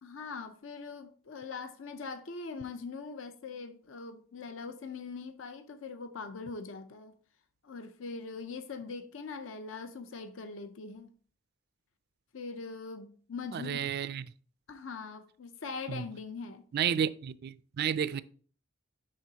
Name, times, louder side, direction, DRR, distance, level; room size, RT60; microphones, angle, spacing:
voice 1, 0.0-7.1 7.6-11.1 12.3-13.9 14.7-16.7 18.1-18.2, left 4 dB, 70° left, 0.6 m, -42 dB
voice 2, 13.5-14.2 15.9-16.0 16.7-18.2, right 8 dB, 50° right, 0.3 m, -31 dB
10.5 x 3.8 x 2.8 m
head